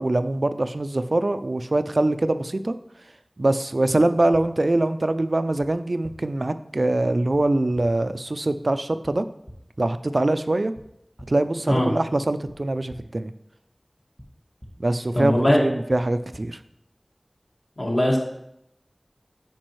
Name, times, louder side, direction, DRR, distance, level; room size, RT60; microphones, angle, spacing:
voice 1, 0.0-2.8 3.4-9.2 9.8-10.7 11.3-13.3 14.8-16.6, right 2 dB, 60° right, 11 dB, 0.4 m, -23 dB
sound 1, 4.3-4.4 5.6-5.7 6.0-6.1 7.3-7.4 7.7-7.8 9.0-9.1 9.4-9.6 10.7-10.8 11.2-11.3 12.5-12.6 12.9-13.0 14.2-14.3 14.6-14.7 15.9-16.0 16.3-16.4, equal, 20° left, 1.5 m, -43 dB
voice 2, 15.1-15.6 17.8-18.2, left 1 dB, 50° left, -3 dB, 1.8 m, -20 dB
8.7 x 5.3 x 3.1 m, 0.79 s
wide cardioid pair, 50°, 0 cm